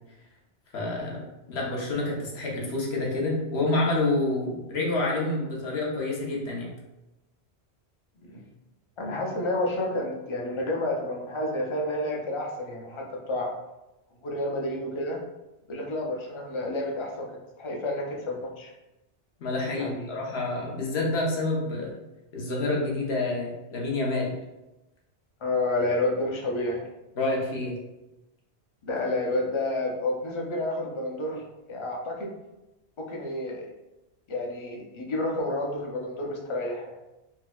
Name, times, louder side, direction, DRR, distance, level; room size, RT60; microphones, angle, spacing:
voice 1, 0.7-1.2 1.5-6.7 19.4-21.9 22.3-24.3 27.2-27.8, left 2 dB, 75° left, -3 dB, 1.0 m, -28 dB
voice 2, 9.0-13.5 14.2-15.2 15.7-17.3 17.6-18.7 19.7-20.2 25.4-26.8 28.8-32.3 33.0-33.7 34.3-37.0, left 1 dB, 45° left, -1 dB, 0.4 m, -30 dB
4.3 x 2.0 x 2.2 m, 0.97 s
omnidirectional pair, 1.1 m